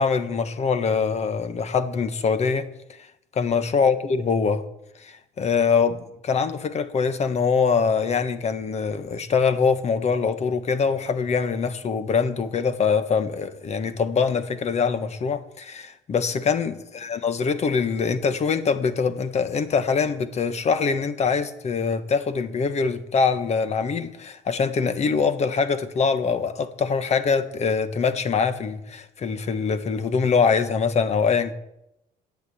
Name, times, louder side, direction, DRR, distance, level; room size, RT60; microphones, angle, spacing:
voice 1, 0.0-2.7 3.3-4.6 5.0-31.5, left 5 dB, 40° left, 1.2 m, -23 dB
10.5 x 8.4 x 8.5 m
cardioid pair, 110°, 17 cm